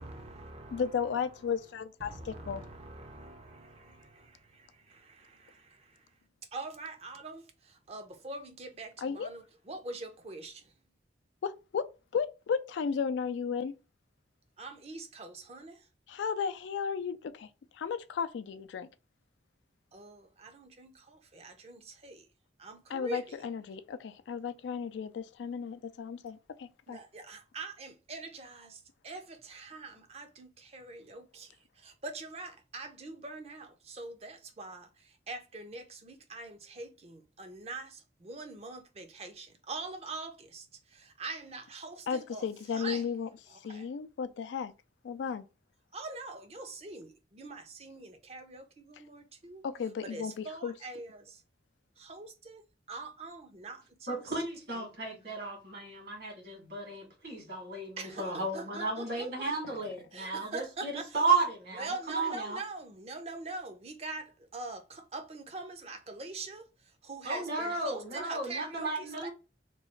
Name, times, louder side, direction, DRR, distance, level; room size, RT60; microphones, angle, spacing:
voice 1, 0.0-1.5 2.0-6.1 6.5-10.7 14.6-15.9 19.9-22.3 22.6-23.4 26.9-43.1 43.5-43.9 45.9-49.6 50.0-51.4 52.0-54.2 54.7-54.9 58.0-59.5 60.1-61.2 61.8-69.3, right 3 dB, 35° right, 0.5 m, -44 dB
voice 2, 0.7-2.1 2.5-2.6 9.0-9.3 11.4-11.9 12.1-13.7 16.1-17.5 17.7-18.9 22.9-27.0 42.1-44.7 45.0-45.5 49.6-50.7, left 6 dB, 85° left, 0.3 m, -34 dB
voice 3, 54.1-62.6 67.2-69.3, right 3 dB, 60° right, 1.6 m, -33 dB
3.0 x 2.3 x 4.3 m
head